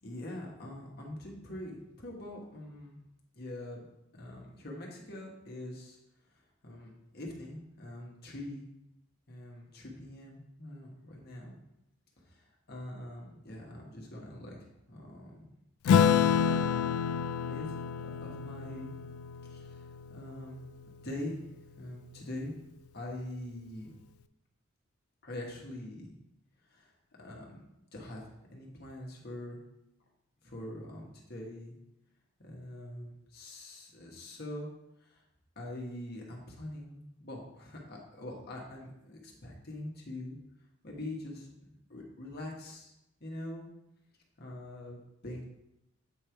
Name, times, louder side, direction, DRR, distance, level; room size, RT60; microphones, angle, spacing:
voice 1, 0.0-3.0 3.3-3.8 4.1-6.0 6.6-8.7 9.3-11.6 12.3-12.4 12.7-15.5 16.3-16.9 17.4-17.8 18.2-18.9 19.5-19.8 20.1-20.6 21.0-21.4 21.8-22.6 22.9-24.0 25.2-26.1 26.7-26.9 27.2-27.6 27.9-28.2 28.5-29.6 30.4-31.7 32.4-34.7 35.0-35.2 35.5-40.4 40.8-42.9 43.2-43.7 44.4-45.4, left 1 dB, 50° left, -1 dB, 1.3 m, -43 dB
Acoustic guitar / Strum, 15.9-20.7, left 7 dB, 90° left, 0.3 m, -28 dB
8.2 x 3.3 x 4.5 m, 0.85 s
head